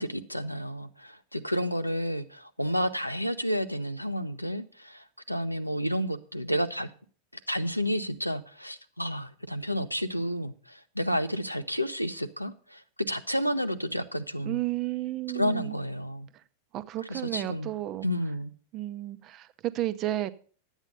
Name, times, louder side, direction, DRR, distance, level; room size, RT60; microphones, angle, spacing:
voice 1, 0.0-6.9 7.5-14.6 15.3-16.3 17.1-17.7 18.0-18.5, equal, 90° left, 0.7 m, -31 dB
voice 2, 14.5-15.7 16.7-18.1 18.7-20.3, right 15 dB, 35° right, 0.7 m, -32 dB
11.5 x 8.1 x 5.4 m
figure-of-eight pair, 90°, 0 cm